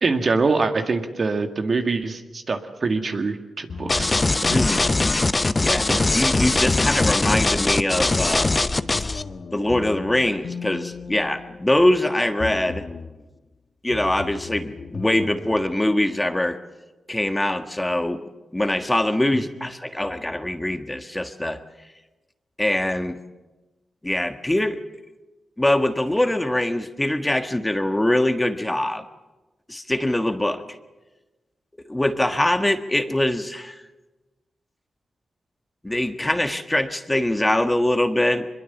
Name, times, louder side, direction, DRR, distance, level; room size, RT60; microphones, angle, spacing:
voice 1, 0.0-4.6 5.9-6.2, right 4 dB, 55° right, 5 dB, 2.0 m, -24 dB
sound 1, 3.7-5.9 6.4-7.2 7.9-12.0 12.4-13.2 13.9-15.7, left 5 dB, 65° left, 1.3 m, -36 dB
sound 2, 3.9-9.2, left 2 dB, 30° left, 0.8 m, -21 dB
voice 2, 4.5-4.9 5.6-8.5 9.5-12.8 13.8-16.6 17.1-18.2 18.5-21.6 22.6-23.2 24.0-24.8 25.6-29.0 29.7-30.6 31.8-33.8 35.8-38.5, left 1 dB, 15° left, 8 dB, 1.5 m, -23 dB
23.0 x 21.5 x 7.1 m, 1.1 s
cardioid pair, 50°, 0 cm